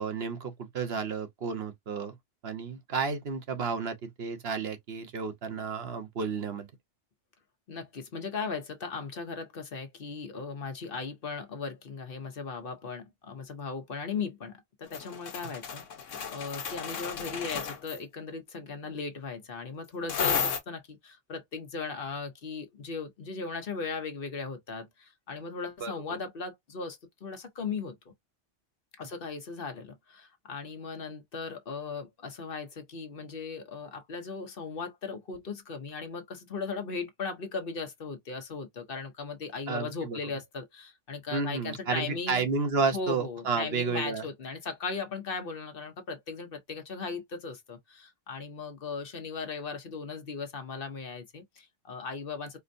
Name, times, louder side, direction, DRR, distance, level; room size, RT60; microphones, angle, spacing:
voice 1, 0.0-2.2 2.4-6.7 25.8-26.2 39.7-40.2 41.3-44.3, right 5 dB, 60° right, 1.1 m, -32 dB
voice 2, 7.7-15.8 16.3-28.0 29.0-42.5 42.9-52.6, left 4 dB, 50° left, 1.1 m, -37 dB
sound 1, 14.9-18.0 20.1-20.6, left 6 dB, 85° left, 1.2 m, -33 dB
4.4 x 2.1 x 2.6 m
omnidirectional pair, 1.3 m